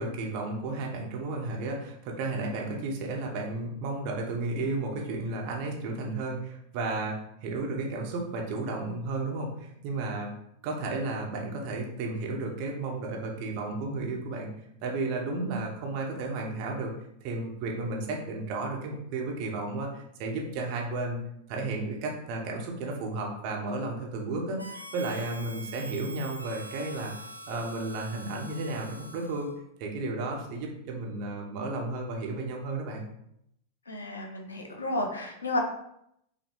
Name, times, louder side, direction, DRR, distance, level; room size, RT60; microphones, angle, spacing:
voice 1, 0.0-10.3 10.6-14.5 14.8-16.9 17.2-21.2 21.5-27.1 27.5-29.5 29.8-33.0, right 2 dB, 45° right, 0 dB, 1.0 m, -33 dB
Harmonica, 24.6-29.6, equal, 90° left, 0.5 m, -44 dB
voice 2, 33.9-35.6, left 2 dB, 75° left, 3 dB, 0.8 m, -32 dB
5.7 x 2.2 x 3.8 m, 0.76 s
figure-of-eight pair, 90°, 0 cm